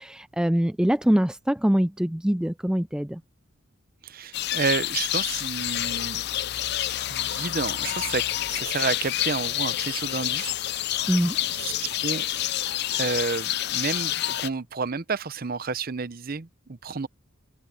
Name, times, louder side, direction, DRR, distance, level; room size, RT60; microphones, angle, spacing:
voice 1, 0.0-3.2 11.1-11.4, equal, 5° right, 0.3 m, -23 dB
voice 2, 4.0-6.2 7.1-10.9 11.6-12.2 12.9-17.1, right 4 dB, 45° right, 0.7 m, -30 dB
sound 1, 4.3-14.5, left 12 dB, 55° left, 0.5 m, -28 dB
head